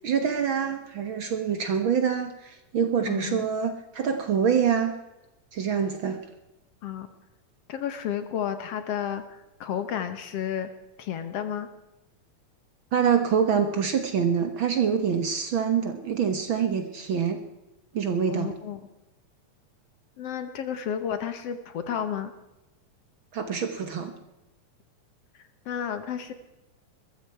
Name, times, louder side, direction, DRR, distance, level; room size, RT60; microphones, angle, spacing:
voice 1, 0.0-5.0 5.5-6.2 12.9-17.4 17.9-18.5 23.3-24.1, right 7 dB, 55° right, 7 dB, 1.7 m, -25 dB
voice 2, 3.1-3.5 6.8-7.1 7.7-10.7 11.0-11.7 18.3-18.8 20.2-22.3 25.3-26.3, left 9 dB, 65° left, 10 dB, 1.9 m, -32 dB
21.5 x 14.0 x 4.6 m, 0.99 s
omnidirectional pair, 3.3 m